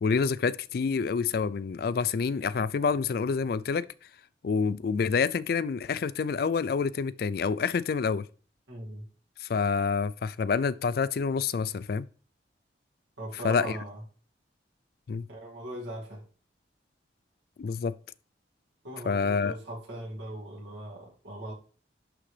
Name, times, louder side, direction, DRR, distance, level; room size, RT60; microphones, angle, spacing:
voice 1, 0.0-3.9 4.4-8.3 9.4-12.1 13.4-13.8 15.1-15.3 17.6-17.9 19.1-19.5, left 5 dB, 55° left, 0.3 m, -27 dB
voice 2, 8.7-9.1 13.2-14.0 15.3-16.2 18.8-21.5, right 1 dB, 85° right, 2.3 m, -39 dB
11.0 x 3.8 x 3.3 m
head